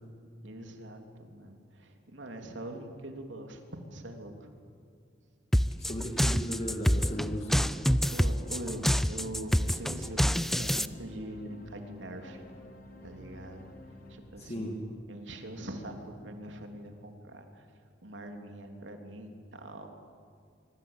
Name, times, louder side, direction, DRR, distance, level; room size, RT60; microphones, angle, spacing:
voice 1, 0.4-4.5 7.8-12.4 13.0-13.7 14.1-14.7 15.1-17.6 18.0-19.9, right 1 dB, 80° right, 4 dB, 3.2 m, -43 dB
sound 1, 5.5-10.9, equal, ahead, 0.6 m, -26 dB
voice 2, 5.8-7.7 14.4-14.9, equal, 35° left, 0 dB, 2.5 m, -36 dB
sound 2, 6.7-15.2, left 1 dB, 55° left, 3.6 m, -50 dB
25.0 x 23.5 x 8.9 m, 2.3 s
head